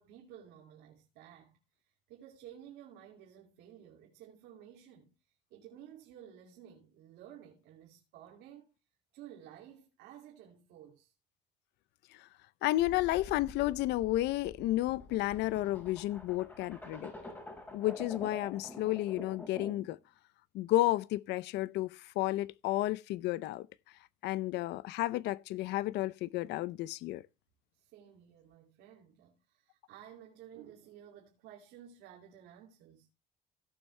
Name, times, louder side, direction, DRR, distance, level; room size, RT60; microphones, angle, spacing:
voice 1, 0.0-5.2 5.5-8.7 9.1-11.1 27.7-33.1, right 10 dB, 85° right, 2.8 m, -54 dB
voice 2, 12.6-17.1 17.7-20.0 20.5-23.7 24.2-27.2, left 16 dB, 85° left, 0.6 m, -32 dB
sound 1, 12.8-20.0, left 1 dB, 10° left, 5.2 m, -48 dB
16.5 x 7.3 x 3.3 m
cardioid pair, 110°, 17 cm